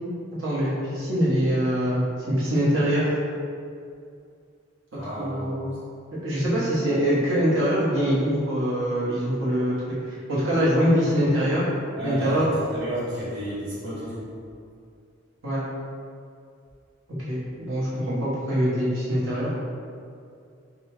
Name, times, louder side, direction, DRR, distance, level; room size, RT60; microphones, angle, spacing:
voice 1, 0.4-3.1 5.2-5.8 6.2-9.7 10.1-11.7 12.0-12.5 15.4-15.6 17.2-19.5, equal, 85° right, -9 dB, 1.1 m, -23 dB
voice 2, 4.9-5.6 12.0-14.3, equal, 65° right, -11 dB, 1.0 m, -32 dB
4.0 x 2.3 x 3.3 m, 2.3 s
head